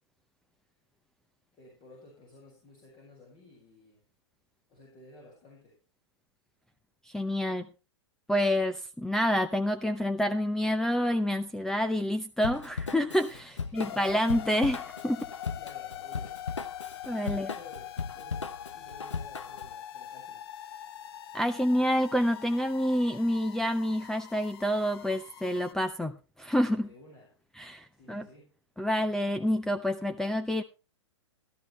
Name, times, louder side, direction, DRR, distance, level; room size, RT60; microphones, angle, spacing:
voice 1, 1.5-4.0 4.7-5.8 13.5-14.2 15.5-16.7 17.3-20.5 26.8-27.3 27.9-28.6, left 2 dB, 30° left, 0 dB, 5.7 m, -54 dB
voice 2, 7.1-7.7 8.3-15.3 17.1-17.5 21.3-26.9 27.6-28.3 28.8-30.6, equal, 5° left, 9 dB, 0.6 m, -28 dB
Drum kit / Drum, 12.4-19.7, left 5 dB, 90° left, 0.8 m, -38 dB
sound 1, 13.7-25.7, left 10 dB, 55° left, 0.8 m, -43 dB
14.5 x 12.5 x 3.2 m, 0.31 s
hypercardioid pair, 115°, 15 cm